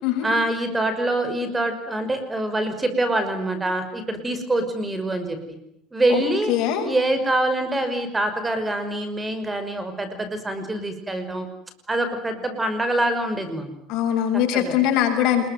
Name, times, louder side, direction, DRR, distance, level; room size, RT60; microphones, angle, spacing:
voice 1, 0.2-5.6 5.9-6.5 6.8-11.5 11.9-13.7 14.5-14.7, right 1 dB, 15° right, 9 dB, 5.7 m, -25 dB
voice 2, 6.5-6.9 13.9-15.5, left 10 dB, 70° left, 5 dB, 6.8 m, -21 dB
28.0 x 21.5 x 9.4 m, 0.74 s
supercardioid pair, 115°, 0 cm